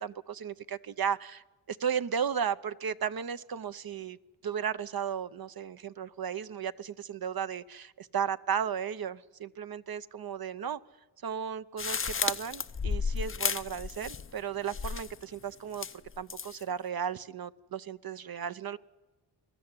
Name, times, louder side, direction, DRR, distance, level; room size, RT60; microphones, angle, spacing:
voice 1, 0.0-4.2 4.4-10.8 11.2-15.9 16.2-18.8, right 7 dB, 50° right, 14 dB, 0.7 m, -35 dB
sound 1, 11.8-14.4 14.7-15.2 15.7-16.6, left 5 dB, 30° left, 0.6 m, -33 dB
21.5 x 13.5 x 9.7 m, 1.2 s
cardioid pair, 75°, 47 cm